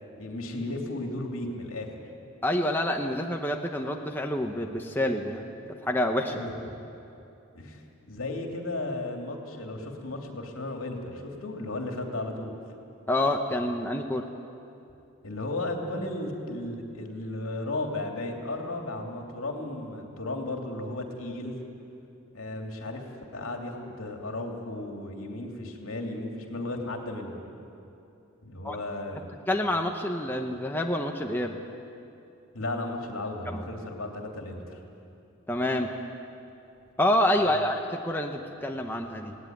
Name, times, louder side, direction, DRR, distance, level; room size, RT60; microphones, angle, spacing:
voice 1, 0.2-1.9 6.3-6.5 7.5-12.5 15.2-21.6 22.3-27.4 28.4-29.4 32.5-34.8 37.4-37.6, left 2 dB, 75° left, 2 dB, 2.8 m, -35 dB
voice 2, 2.4-6.4 13.1-14.3 28.6-28.8 29.5-31.6 33.5-33.6 35.5-35.9 37.0-39.4, left 1 dB, 10° left, 2 dB, 1.0 m, -27 dB
20.0 x 17.5 x 9.3 m, 2.7 s
head